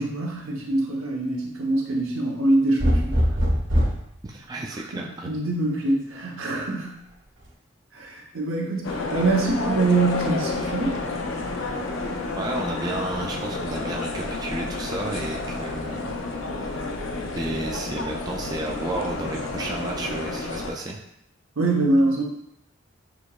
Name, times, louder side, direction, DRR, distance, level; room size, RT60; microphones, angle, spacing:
voice 1, 0.0-3.2 4.9-7.0 7.9-11.0 21.6-22.2, right 2 dB, 90° right, -2 dB, 0.9 m, -24 dB
sound 1, 2.8-4.1 5.7-6.3, equal, 70° right, 1.4 m, -21 dB
voice 2, 4.2-5.3 12.4-16.1 17.4-21.0, right 2 dB, 20° right, -1 dB, 0.3 m, -32 dB
sound 2, 8.8-20.7, left 3 dB, 75° left, 0.5 m, -30 dB
6.2 x 2.9 x 2.3 m, 0.77 s
head